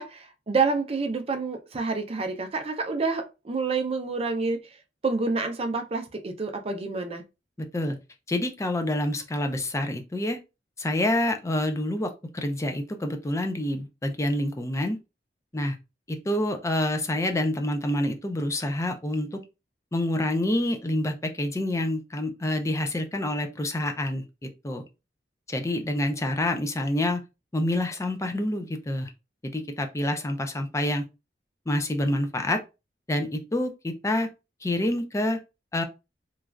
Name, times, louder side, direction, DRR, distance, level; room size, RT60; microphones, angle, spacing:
voice 1, 0.0-4.7 5.0-7.2, right 4 dB, 35° right, 0.5 m, -28 dB
voice 2, 7.6-8.0 8.3-10.4 10.8-15.0 15.5-15.8 16.1-19.4 19.9-24.8 25.5-27.2 27.5-29.1 29.4-31.0 31.7-32.6 33.1-34.3 34.6-35.4 35.7-35.8, left 1 dB, 15° left, 0.4 m, -27 dB
3.1 x 2.3 x 2.4 m
head